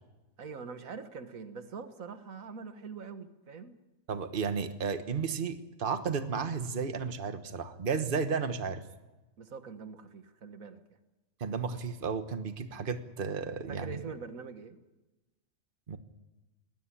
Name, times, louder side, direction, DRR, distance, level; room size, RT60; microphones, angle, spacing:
voice 1, 0.4-3.7 9.4-11.0 13.7-14.8, right 5 dB, 85° right, 9 dB, 1.8 m, -44 dB
voice 2, 4.1-8.8 11.4-14.0 15.9-16.0, right 5 dB, 40° right, 9 dB, 1.4 m, -33 dB
19.5 x 16.5 x 9.9 m, 1.1 s
omnidirectional pair, 1.4 m